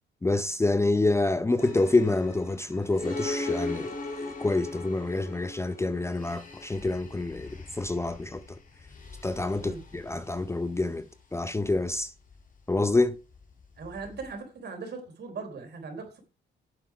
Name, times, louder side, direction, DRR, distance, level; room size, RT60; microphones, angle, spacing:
voice 1, 0.2-3.9 4.2-8.4 9.2-11.1 11.3-12.1 12.7-13.1, left 2 dB, 15° left, 0.6 m, -27 dB
sound 1, 1.6-14.4, left 2 dB, 40° left, 2.8 m, -40 dB
voice 2, 13.8-16.2, right 4 dB, 60° right, 3.8 m, -39 dB
9.2 x 7.5 x 4.8 m
cardioid pair, 90°, 20 cm